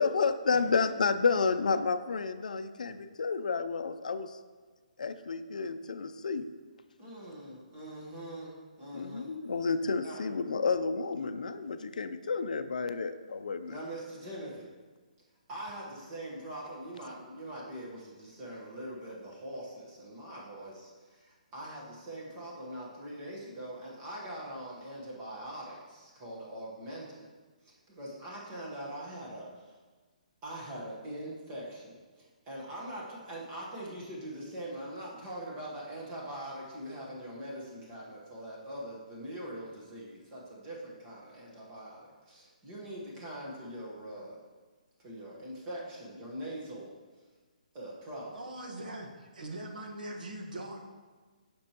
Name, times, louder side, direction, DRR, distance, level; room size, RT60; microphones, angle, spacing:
voice 1, 0.0-4.4 5.0-6.5 8.9-13.8, left 4 dB, 65° left, 10 dB, 0.5 m, -30 dB
voice 2, 7.0-9.3 10.0-10.2 13.7-14.7 15.5-27.3 27.6-29.7 30.4-44.4 45.0-47.0 47.7-48.6, right 1 dB, 15° right, -4 dB, 1.1 m, -43 dB
voice 3, 48.3-50.9, right 1 dB, 75° right, 1 dB, 1.4 m, -41 dB
9.6 x 6.1 x 2.9 m, 1.4 s
hypercardioid pair, 180°, 4 cm